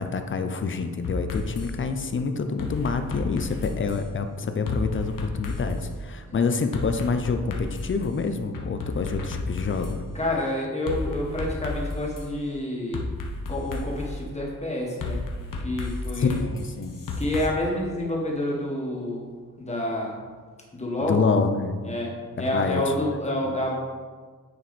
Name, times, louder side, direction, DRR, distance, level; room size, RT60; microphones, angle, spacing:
voice 1, 0.0-10.0 16.2-17.0 21.0-21.8 22.4-22.8 23.4-23.6, left 4 dB, 35° left, 7 dB, 0.6 m, -27 dB
sound 1, 1.0-1.7 2.6-4.0 4.7-5.8 6.7-8.0 8.5-10.0 10.9-12.3 12.9-14.1 15.0-17.5, left 3 dB, 70° left, 1.1 m, -32 dB
voice 2, 10.1-13.0 13.5-15.2 15.6-16.4 17.2-19.3 19.6-20.2 20.7-21.2 21.8-23.8, left 1 dB, 20° left, -2 dB, 1.5 m, -28 dB
9.3 x 4.7 x 4.2 m, 1.5 s
wide cardioid pair, 170°, 34 cm